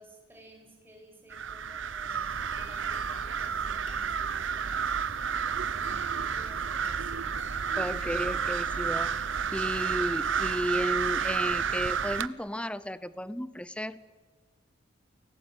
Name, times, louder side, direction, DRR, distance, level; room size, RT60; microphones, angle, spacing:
voice 1, 0.0-5.0 5.7-7.3, equal, 10° right, 1 dB, 6.8 m, -54 dB
sound 1, 1.3-12.3, right 7 dB, 75° right, 0.8 m, -31 dB
sound 2, 2.1-9.3 9.8-10.4 10.7-11.4, left 5 dB, 85° left, 3.2 m, -55 dB
voice 2, 7.8-14.0, equal, 5° left, 16 dB, 0.8 m, -33 dB
29.0 x 21.5 x 9.5 m, 1.3 s
head